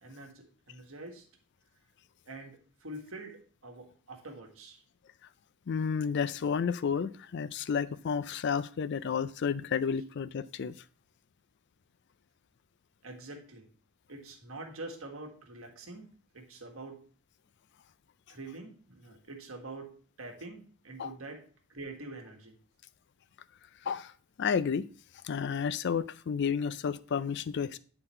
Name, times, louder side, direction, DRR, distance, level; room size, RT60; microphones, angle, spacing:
voice 1, 0.0-1.2 2.3-4.8 13.0-13.7 14.1-16.0 16.3-17.0 18.3-21.4 21.7-22.5, right 2 dB, 65° right, 1.5 m, -45 dB
voice 2, 5.7-10.7 21.0-21.1 23.8-24.1 24.4-24.9 25.2-27.8, left 6 dB, 55° left, 0.4 m, -31 dB
9.8 x 4.0 x 4.3 m
head